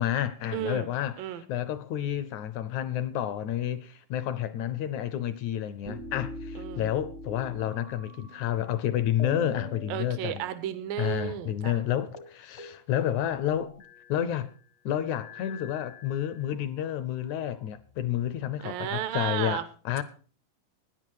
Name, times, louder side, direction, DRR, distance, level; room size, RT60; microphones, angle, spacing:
voice 1, 0.0-10.4 11.0-13.7 14.1-14.5 14.9-20.0, left 11 dB, 75° left, 1.8 m, -30 dB
voice 2, 0.5-0.9 1.2-1.4 6.6-6.9 9.9-11.8 18.6-19.6, right 11 dB, 80° right, 2.6 m, -33 dB
sound 1, 5.9-8.8 9.2-11.0 11.3-11.4 11.7-11.9 12.1-12.3 12.6-14.3 15.1-16.6 17.4-18.3, left 2 dB, 60° left, 0.7 m, -43 dB
15.0 x 10.0 x 4.7 m
omnidirectional pair, 4.0 m